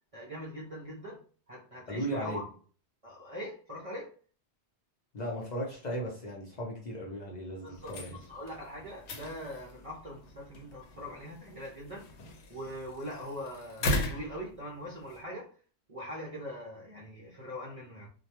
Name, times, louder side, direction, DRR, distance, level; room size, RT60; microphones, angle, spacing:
voice 1, 0.1-1.2 1.5-2.4 3.0-4.1 7.6-12.1 12.5-15.5 15.9-18.1, equal, 45° right, 0.5 m, -42 dB
voice 2, 1.9-2.4 5.1-8.2, equal, 50° left, 0.6 m, -36 dB
sound 1, 7.7-15.2, left 1 dB, 85° left, 0.9 m, -38 dB
2.2 x 2.2 x 2.8 m
omnidirectional pair, 1.1 m